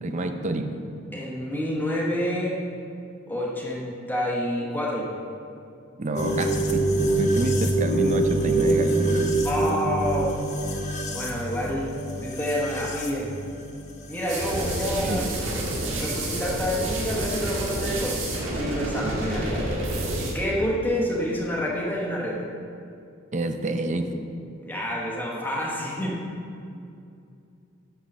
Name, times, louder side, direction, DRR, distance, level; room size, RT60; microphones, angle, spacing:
voice 1, 0.0-0.7 6.0-9.5 15.0-15.2 23.3-24.1, right 2 dB, 35° right, 7 dB, 0.5 m, -28 dB
voice 2, 1.1-2.6 3.3-5.1 9.4-10.3 11.1-11.9 12.2-13.3 14.1-15.2 16.0-19.6 20.2-22.4 24.6-26.2, equal, 10° left, -4 dB, 1.0 m, -28 dB
sound 1, 6.2-14.9, right 2 dB, 35° left, 0.8 m, -26 dB
sound 2, 14.3-20.3, right 1 dB, 65° right, 1.7 m, -29 dB
8.5 x 5.3 x 6.1 m, 2.5 s
head